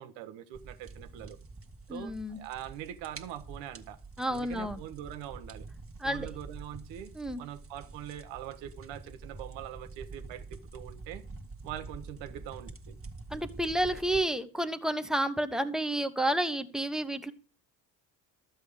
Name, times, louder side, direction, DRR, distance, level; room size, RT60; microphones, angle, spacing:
voice 1, 0.0-1.4 1.9-4.0 4.3-5.7 6.0-11.2 11.6-13.0, right 11 dB, 75° right, 1.2 m, -43 dB
sound 1, 0.5-14.2, right 3 dB, 30° right, 1.9 m, -47 dB
voice 2, 1.9-2.4 4.2-4.8 6.0-6.3 7.1-7.4 13.3-17.3, right 1 dB, ahead, 1.3 m, -30 dB
12.5 x 8.0 x 5.0 m
hypercardioid pair, 65°, 45 cm